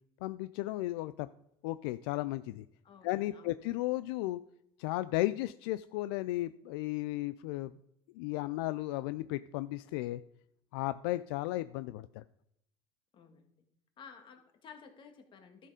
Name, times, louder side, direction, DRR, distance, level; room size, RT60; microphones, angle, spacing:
voice 1, 0.2-1.3 1.6-2.6 3.0-4.4 4.8-7.7 8.2-10.2 10.7-12.2, left 17 dB, 80° left, 14 dB, 0.4 m, -34 dB
voice 2, 2.8-3.6 13.1-13.4 14.0-15.7, left 6 dB, 40° left, 5 dB, 2.1 m, -54 dB
12.0 x 6.7 x 5.0 m, 0.76 s
supercardioid pair, 100°, 12 cm